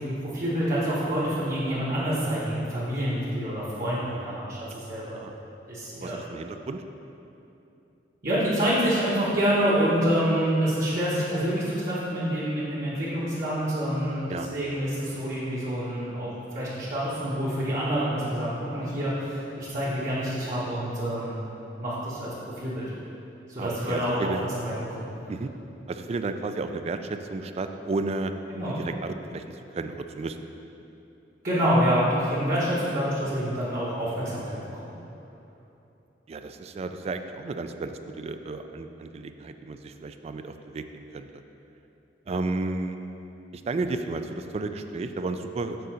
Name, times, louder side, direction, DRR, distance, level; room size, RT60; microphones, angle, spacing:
voice 1, 0.0-5.2 5.7-6.2 8.2-21.4 21.8-22.3 22.6-22.8 23.5-24.3 24.6-25.0 28.5-28.7 31.4-34.9, equal, 50° right, -10 dB, 1.3 m, -27 dB
voice 2, 5.9-6.8 14.3-14.5 23.6-24.4 25.3-25.5 25.9-28.3 28.8-29.4 29.7-30.4 36.3-41.4 42.3-43.0 43.5-45.8, right 3 dB, 35° right, 8 dB, 0.3 m, -33 dB
6.8 x 3.9 x 6.2 m, 2.9 s
head